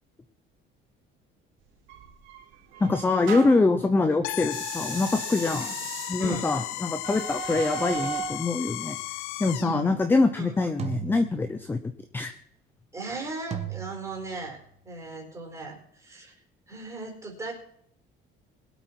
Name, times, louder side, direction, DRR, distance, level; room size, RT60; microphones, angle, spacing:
sound 1, 1.9-3.7 4.4-8.4, right 7 dB, 70° right, 4.2 m, -37 dB
voice 1, 2.8-5.7 6.1-9.0 9.4-11.8 12.1-12.3, left 3 dB, 10° left, 8 dB, 0.7 m, -24 dB
sound 2, 4.2-9.8, left 19 dB, 85° left, 0.5 m, -35 dB
voice 2, 6.2-6.5 9.6-10.0 10.3-10.5 12.9-16.3 16.7-17.5, right 3 dB, 15° right, 1 dB, 4.2 m, -37 dB
sound 3, 8.9-9.3 10.8-12.0 13.5-14.7, right 10 dB, 30° right, 1.2 m, -38 dB
21.5 x 8.2 x 4.5 m, 0.65 s
cardioid pair, 170°, 21 cm